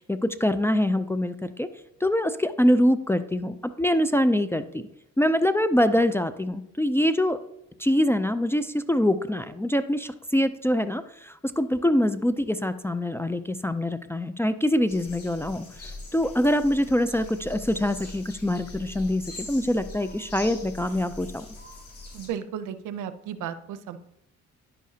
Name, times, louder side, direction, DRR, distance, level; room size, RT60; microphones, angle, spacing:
voice 1, 0.0-1.7 2.0-4.9 5.2-7.4 7.8-21.5, left 1 dB, 10° left, 9 dB, 0.3 m, -24 dB
sound 1, 14.9-22.3, left 2 dB, 50° left, 2.2 m, -42 dB
voice 2, 22.1-24.0, right 9 dB, 80° right, 11 dB, 0.6 m, -34 dB
10.0 x 6.4 x 2.7 m, 0.81 s
cardioid pair, 90°, 30 cm